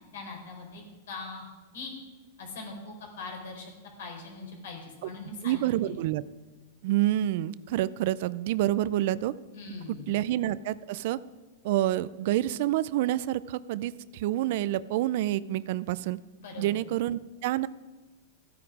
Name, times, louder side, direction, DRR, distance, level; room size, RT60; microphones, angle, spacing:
voice 1, 0.1-1.9 2.4-3.7 4.0-6.0 9.5-10.1 16.4-16.8, left 3 dB, 80° left, 2 dB, 4.0 m, -41 dB
voice 2, 5.4-6.2 6.8-9.3 10.1-11.2 11.6-16.2 16.6-17.7, right 14 dB, 60° right, 18 dB, 0.5 m, -28 dB
14.5 x 9.4 x 4.9 m, 1.3 s
supercardioid pair, 140°, 0 cm